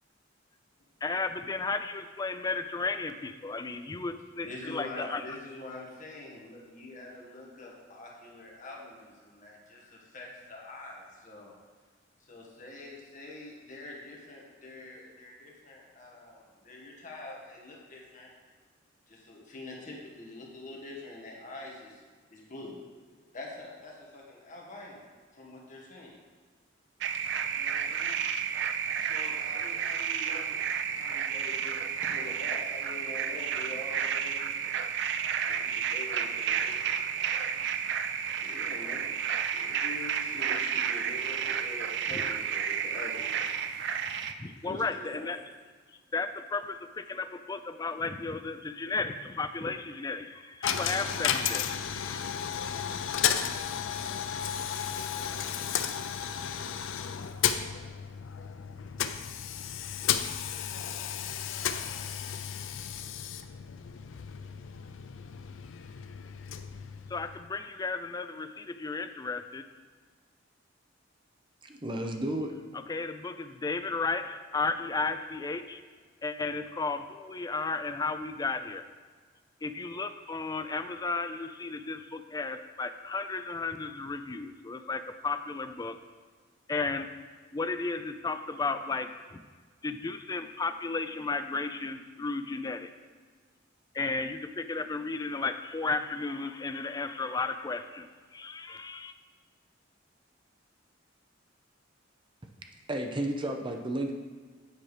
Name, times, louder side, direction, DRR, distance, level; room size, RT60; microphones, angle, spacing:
voice 1, 1.0-5.2 42.1-42.2 44.4-45.4 46.1-52.2 67.1-69.7 72.9-75.8 76.2-78.8 79.6-86.0 86.7-87.1 87.5-89.4 89.8-92.9 93.9-98.1 98.3-99.1, left 3 dB, 20° left, 9 dB, 0.4 m, -34 dB
voice 2, 4.4-11.5 12.3-18.3 19.1-22.0 22.3-22.8 23.3-26.1 27.5-28.2 29.0-30.6 30.9-34.7 35.4-37.0 38.4-39.1 39.5-43.6 44.6-45.3, left 2 dB, 40° left, -2 dB, 1.6 m, -45 dB
sound 1, 27.0-44.3, right 7 dB, 60° right, 0.4 m, -31 dB
Coin (dropping), 50.6-67.6, left 8 dB, 80° left, 0.4 m, -33 dB
voice 3, 71.6-72.5 102.9-104.1, right 1 dB, 25° right, 3 dB, 0.7 m, -32 dB
8.8 x 4.6 x 5.0 m, 1.5 s
head